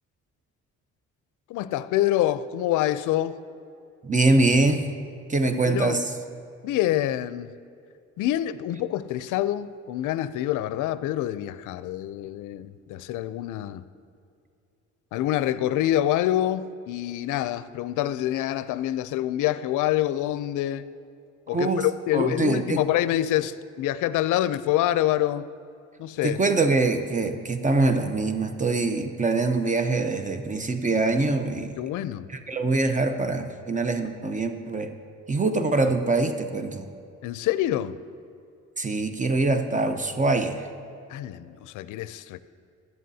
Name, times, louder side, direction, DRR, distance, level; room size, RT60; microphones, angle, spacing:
voice 1, 1.5-3.4 5.4-6.0 6.6-7.5 8.2-13.8 15.1-20.8 21.5-25.5 26.0-26.4 31.8-32.3 35.8-35.9 37.2-37.9 41.1-42.4, left 13 dB, 85° left, 15 dB, 0.5 m, -26 dB
voice 2, 4.0-4.9 5.3-6.1 21.5-21.9 22.1-22.8 26.2-31.8 32.3-34.9 35.3-36.8 38.8-40.7, right 3 dB, 25° right, 7 dB, 0.7 m, -24 dB
15.5 x 11.0 x 2.7 m, 2.4 s
cardioid pair, 90°, 30 cm